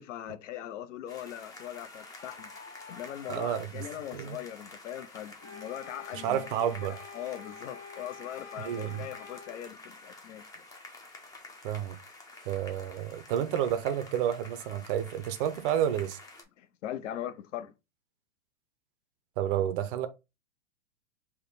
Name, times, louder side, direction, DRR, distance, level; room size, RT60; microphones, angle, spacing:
voice 1, 0.0-2.5 2.9-6.5 6.9-10.4 16.6-17.7, left 11 dB, 65° left, 0.6 m, -40 dB
sound 1, 1.1-16.4, left 3 dB, 10° left, 0.5 m, -49 dB
voice 2, 3.3-3.8 4.1-4.4 6.1-7.0 8.6-9.1 11.6-11.9 12.5-16.2 19.4-20.1, right 10 dB, 40° right, 0.6 m, -30 dB
sound 2, 5.4-9.6, left 5 dB, 30° left, 1.2 m, -47 dB
3.6 x 2.2 x 3.9 m
hypercardioid pair, 115°, 40 cm